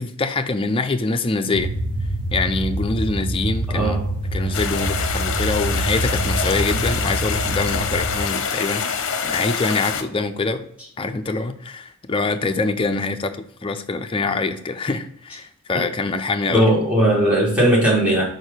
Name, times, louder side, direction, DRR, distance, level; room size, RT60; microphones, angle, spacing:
voice 1, 0.0-1.7 2.3-4.0 4.3-10.7 11.0-16.7, left 3 dB, 25° left, 7 dB, 0.4 m, -24 dB
sound 1, 1.5-8.2, right 1 dB, 35° right, 0.8 m, -25 dB
voice 2, 3.7-4.0 16.5-18.2, right 1 dB, 5° right, -4 dB, 1.8 m, -17 dB
sound 2, 4.5-10.0, left 6 dB, 60° left, 0.7 m, -26 dB
4.6 x 4.5 x 4.9 m, 0.68 s
head